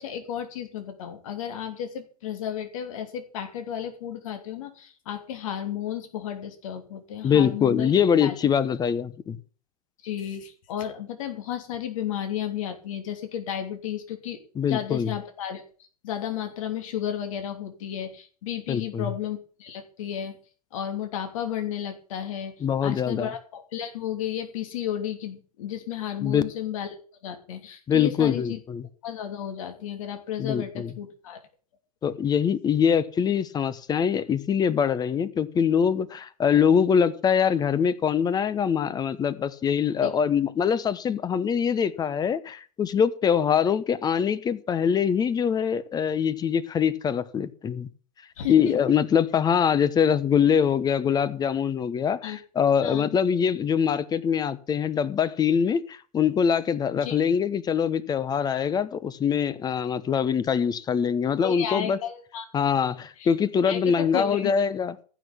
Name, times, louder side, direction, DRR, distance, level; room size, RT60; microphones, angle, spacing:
voice 1, 0.0-7.9 8.2-8.4 10.0-14.4 14.7-15.6 16.0-20.4 20.7-28.6 29.0-31.4 40.0-40.1 48.4-48.8 52.2-52.4 52.8-53.1 57.0-57.2 61.4-62.4 63.2-63.3 63.7-64.5, left 9 dB, 55° left, 7 dB, 2.9 m, -33 dB
voice 2, 7.2-9.4 14.6-15.1 18.7-19.1 22.6-23.3 26.2-26.4 27.9-28.9 30.4-30.9 32.0-47.9 48.5-62.0 62.5-65.0, left 7 dB, 20° left, 17 dB, 1.0 m, -23 dB
15.0 x 6.4 x 8.5 m, 0.40 s
figure-of-eight pair, 100°, 20 cm